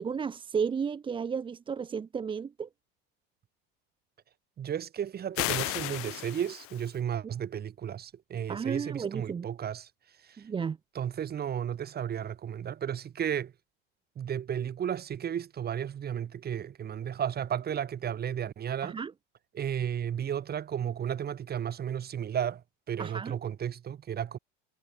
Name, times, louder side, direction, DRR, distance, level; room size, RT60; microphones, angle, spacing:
voice 1, 0.0-2.7 8.5-9.5 10.4-10.8 18.8-19.1 23.0-23.4, right 6 dB, 15° right, 0.6 m, -33 dB
voice 2, 4.6-9.9 10.2-10.4 10.9-13.5 14.2-19.0 19.5-24.4, right 9 dB, 35° right, 4.1 m, -33 dB
sound 1, 5.4-7.0, left 19 dB, 50° left, 0.9 m, -34 dB
supercardioid pair, 120°, 29 cm